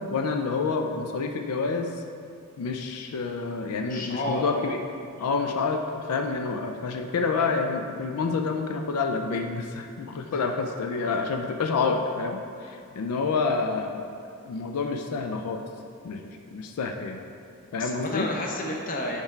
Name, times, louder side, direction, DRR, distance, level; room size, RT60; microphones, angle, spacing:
voice 1, 0.0-2.0 2.6-4.8 5.2-14.1 14.5-15.7 16.0-17.2 17.7-18.3, left 4 dB, 90° left, 5 dB, 0.4 m, -28 dB
voice 2, 3.9-4.7 5.2-5.3 17.8-19.2, left 1 dB, 35° left, 0 dB, 0.7 m, -31 dB
5.8 x 4.2 x 4.5 m, 2.4 s
head